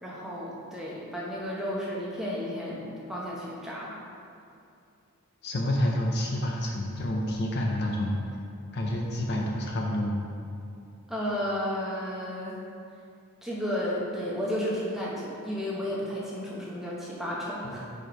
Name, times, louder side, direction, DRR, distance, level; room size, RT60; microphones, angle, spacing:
voice 1, 0.0-4.0 11.1-12.6 13.4-17.8, equal, ahead, -6 dB, 0.9 m, -33 dB
voice 2, 5.4-8.2 8.7-10.2 17.6-17.9, left 1 dB, 45° left, -1 dB, 0.5 m, -28 dB
5.0 x 4.4 x 4.5 m, 2.5 s
head